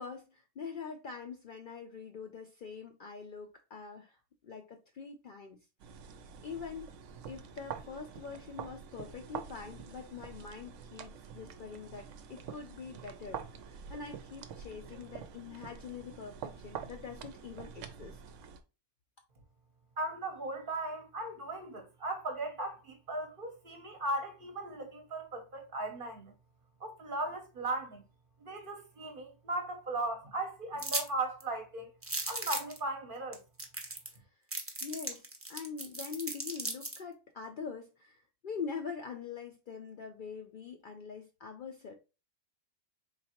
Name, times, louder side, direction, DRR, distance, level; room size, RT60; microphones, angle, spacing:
voice 1, 0.0-5.6 6.4-6.9 7.3-18.2 34.1-34.3 34.8-41.9, left 5 dB, 60° left, 0.5 m, -44 dB
sound 1, 5.8-18.6, right 7 dB, 80° right, 0.9 m, -46 dB
voice 2, 20.0-26.3 26.8-28.0 28.4-31.9 32.3-33.4, right 2 dB, 50° right, 0.9 m, -37 dB
sound 2, 30.8-31.1 31.4-31.5 32.0-32.8 33.3-33.4 33.6-34.2 34.5-37.0, right 2 dB, 20° right, 0.4 m, -36 dB
4.0 x 3.3 x 2.8 m
omnidirectional pair, 1.3 m